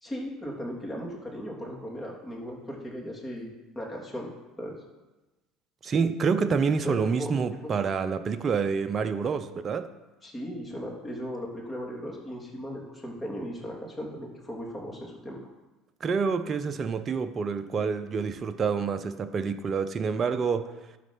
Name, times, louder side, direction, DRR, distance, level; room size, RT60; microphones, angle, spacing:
voice 1, 0.0-4.3 4.6-4.8 6.8-7.3 7.6-7.7 10.2-15.4, equal, 15° left, -3 dB, 3.1 m, -37 dB
voice 2, 5.8-9.9 16.0-20.7, right 5 dB, 35° right, 10 dB, 0.6 m, -27 dB
12.5 x 4.1 x 5.6 m, 1.1 s
hypercardioid pair, 70°, 0 cm